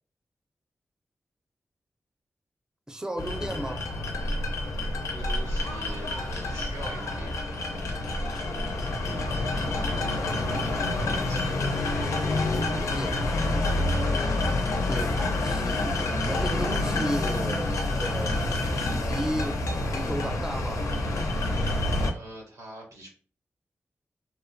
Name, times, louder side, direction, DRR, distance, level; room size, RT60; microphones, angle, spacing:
voice 1, 2.9-3.8 10.2-10.8 12.2-13.8 14.9-19.6 19.9-20.8, right 1 dB, 10° right, 0.4 m, -35 dB
sound 1, 3.2-22.1, left 2 dB, 85° left, 0.4 m, -28 dB
voice 2, 5.1-7.3 8.9-9.3 10.5-11.5 14.9-15.1 22.1-23.1, right 1 dB, 90° right, 0.9 m, -44 dB
2.8 x 2.1 x 2.5 m
cardioid pair, 45°, 5 cm